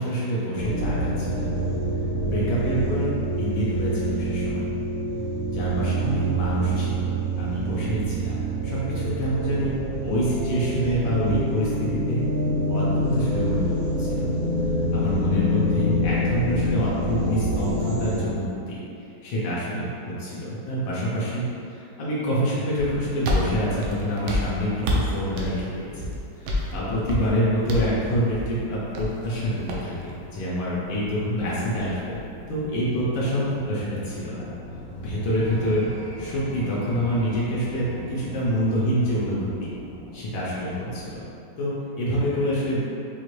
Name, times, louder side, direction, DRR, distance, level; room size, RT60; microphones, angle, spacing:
voice 1, 0.0-1.5 2.2-4.7 5.5-7.1 7.4-8.4 8.6-9.7 10.0-12.2 12.7-14.3 14.9-18.5 19.2-21.4 22.0-26.1 26.4-32.2 32.5-34.5 35.0-35.9 36.2-39.5 40.1-41.2 41.6-42.8, equal, 75° left, -8 dB, 1.5 m, -26 dB
sound 1, 0.6-18.3, right 1 dB, 65° right, 1.1 m, -26 dB
sound 2, 22.8-32.7, left 1 dB, 90° right, 1.4 m, -31 dB
sound 3, 32.3-41.2, equal, 5° right, 0.6 m, -40 dB
4.8 x 2.5 x 3.1 m, 2.7 s
omnidirectional pair, 2.1 m